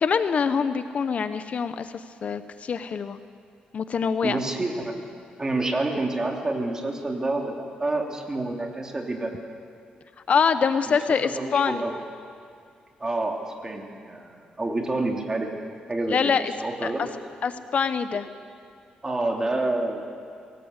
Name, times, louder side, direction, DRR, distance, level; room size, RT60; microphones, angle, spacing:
voice 1, 0.0-1.9 2.2-3.2 3.7-4.4 10.3-11.8 16.1-16.4 16.8-17.1 17.4-18.3, left 6 dB, 50° left, 11 dB, 0.8 m, -24 dB
voice 2, 4.2-5.0 5.4-9.4 10.9-12.0 13.0-15.5 15.9-16.3 16.6-17.1 19.0-20.0, right 2 dB, 20° right, 1 dB, 3.1 m, -28 dB
23.0 x 18.5 x 8.2 m, 2.3 s
cardioid pair, 115°, 3 cm